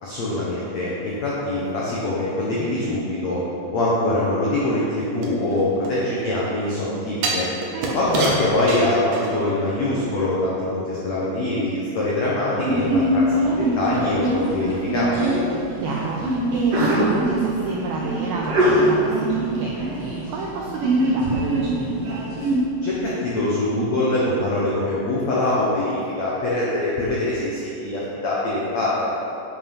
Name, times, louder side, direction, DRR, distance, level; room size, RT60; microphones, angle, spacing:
voice 1, 0.0-3.4 3.7-7.5 7.9-13.2 13.6-15.4 22.8-29.1, left 1 dB, 90° left, -7 dB, 1.5 m, -23 dB
sound 1, 5.2-6.4 7.2-9.6 10.0-10.1, right 3 dB, 70° right, 2.0 m, -28 dB
voice 2, 7.7-8.5 15.8-22.3, right 3 dB, 85° right, -2 dB, 2.1 m, -29 dB
Sneeze, 12.6-22.6, right 1 dB, 45° right, 2.3 m, -23 dB
8.2 x 7.8 x 5.4 m, 2.7 s
omnidirectional pair, 5.2 m